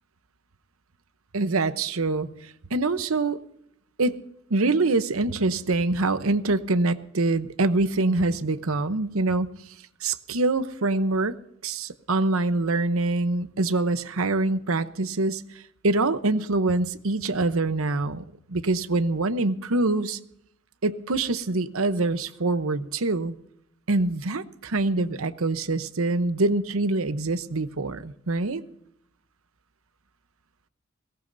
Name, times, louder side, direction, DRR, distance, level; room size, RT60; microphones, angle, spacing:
voice 1, 1.3-3.4 4.0-4.2 4.5-9.5 10.0-11.4 11.6-20.2 20.8-23.4 23.9-28.6, right 2 dB, 85° right, 12 dB, 0.9 m, -25 dB
21.5 x 18.0 x 2.7 m, 0.73 s
head